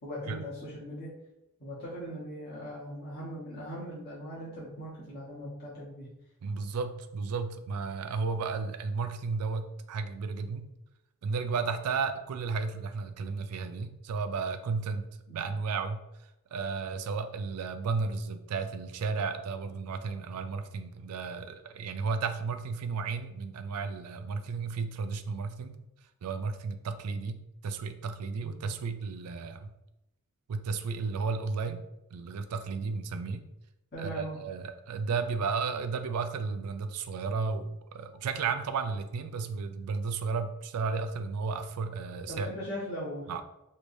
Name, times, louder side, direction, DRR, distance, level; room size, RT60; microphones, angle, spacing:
voice 1, 0.0-1.1 1.6-6.1 15.3-15.5 28.4-28.7 33.9-34.4 42.3-43.3, equal, 45° left, -8 dB, 1.1 m, -39 dB
voice 2, 6.4-10.7 11.2-15.1 15.3-16.0 16.5-25.8 26.2-27.4 27.6-29.7 30.5-31.8 32.1-33.4 34.0-42.5 43.3-43.4, right 4 dB, 85° right, 9 dB, 0.4 m, -33 dB
3.3 x 3.1 x 2.6 m, 0.89 s
head